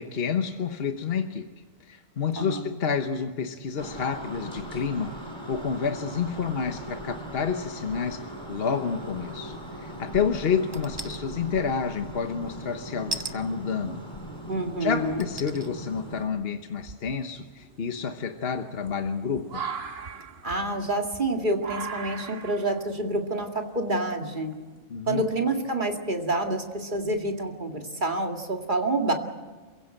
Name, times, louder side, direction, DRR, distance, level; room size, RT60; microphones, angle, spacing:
voice 1, 0.0-1.5 1.9-5.1 5.5-14.0 14.8-19.6 24.9-25.2, left 6 dB, 55° left, 7 dB, 1.3 m, -29 dB
voice 2, 2.4-2.7 14.5-15.3 20.4-24.5 25.1-29.1, right 2 dB, 40° right, 3 dB, 2.3 m, -28 dB
sound 1, 3.8-16.2, right 1 dB, 20° left, 3.7 m, -39 dB
sound 2, 10.7-11.2 13.1-13.4 14.3-14.4 15.2-15.7 16.2-16.3, right 2 dB, 25° right, 0.8 m, -34 dB
sound 3, 15.0-15.5 16.2-16.3 16.8-24.8, right 6 dB, 60° right, 1.5 m, -40 dB
28.5 x 16.0 x 7.9 m, 1.4 s
omnidirectional pair, 1.2 m